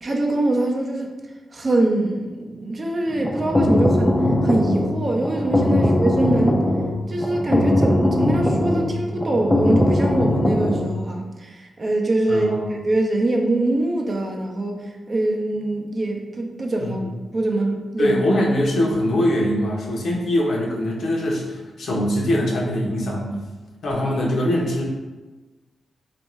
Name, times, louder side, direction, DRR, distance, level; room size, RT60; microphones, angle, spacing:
voice 1, 0.0-1.1 1.5-4.1 4.4-6.6 7.1-17.0 17.3-18.2, right 2 dB, 45° right, 1 dB, 0.5 m, -23 dB
sound 1, 3.1-10.9, left 1 dB, 20° left, 0.3 m, -20 dB
voice 2, 12.3-12.7 16.8-17.1 18.0-23.4 23.8-24.9, left 1 dB, 70° left, -2 dB, 0.6 m, -22 dB
2.5 x 2.2 x 3.0 m, 1.2 s
supercardioid pair, 50°, 0 cm